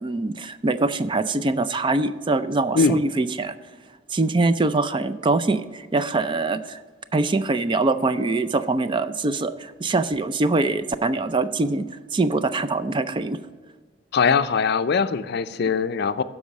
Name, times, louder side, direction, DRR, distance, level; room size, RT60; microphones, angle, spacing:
voice 1, 0.0-3.6 4.1-6.8 7.1-13.4, right 3 dB, 25° right, 12 dB, 0.4 m, -23 dB
voice 2, 14.1-16.2, left 5 dB, 60° left, 12 dB, 0.4 m, -21 dB
12.5 x 4.8 x 6.2 m, 1.4 s
head